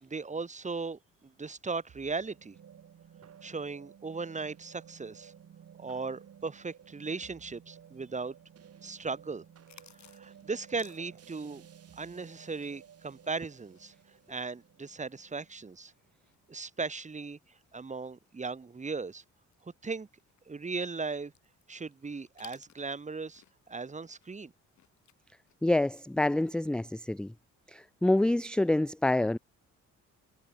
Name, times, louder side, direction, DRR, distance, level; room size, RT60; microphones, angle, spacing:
voice 1, 0.0-2.6 3.4-5.3 5.8-8.4 8.8-9.4 10.0-11.6 12.0-13.9 14.3-15.9 16.5-17.4 17.7-19.2 19.6-20.1 20.5-21.3 21.7-24.5, right 4 dB, 25° right, 1.7 m, -37 dB
sound 1, 1.9-16.3, right 8 dB, 55° right, 2.5 m, -55 dB
sound 2, 7.9-12.9 13.2-18.7 19.1-19.2 19.5-23.7 24.0-26.0 26.3-26.6, left 11 dB, 65° left, 3.2 m, -61 dB
voice 2, 25.6-27.3 27.7-29.4, left 1 dB, 5° left, 0.3 m, -27 dB
cardioid pair, 90°, 30 cm